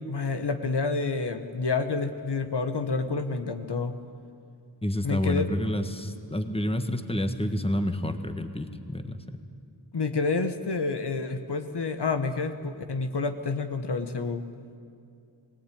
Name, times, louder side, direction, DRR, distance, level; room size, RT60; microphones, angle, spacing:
voice 1, 0.0-4.0 5.0-5.5 9.9-14.5, left 4 dB, 65° left, 7 dB, 1.3 m, -29 dB
voice 2, 4.8-9.4, left 1 dB, 15° left, 8 dB, 1.5 m, -29 dB
23.0 x 17.5 x 9.3 m, 2.4 s
wide cardioid pair, 55°, 43 cm